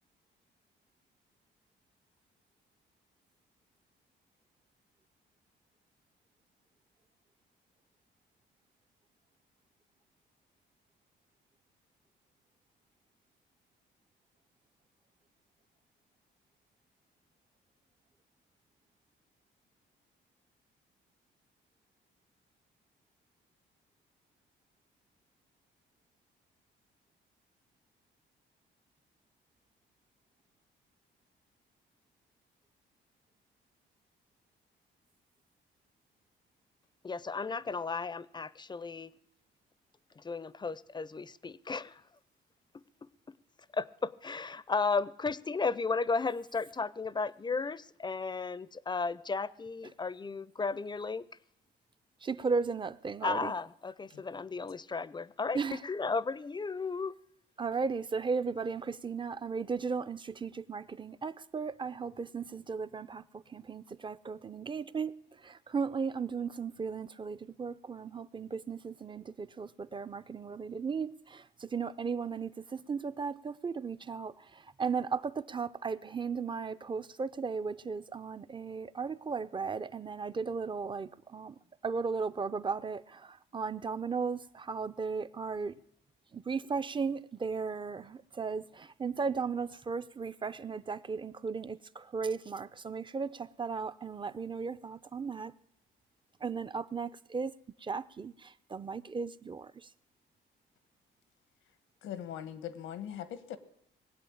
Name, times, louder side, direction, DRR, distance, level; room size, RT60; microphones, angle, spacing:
voice 1, 37.0-39.1 40.2-42.0 43.7-51.3 53.2-57.2, left 4 dB, 20° left, 0.5 m, -34 dB
voice 2, 52.2-53.5 55.5-55.8 57.6-65.1 65.4-81.5 81.8-85.8 86.3-95.5 96.4-97.5 97.8-99.7, right 5 dB, 25° right, 0.6 m, -36 dB
voice 3, 102.0-103.6, left 10 dB, 85° left, 1.2 m, -40 dB
20.0 x 8.1 x 8.6 m
cardioid pair, 90°, 20 cm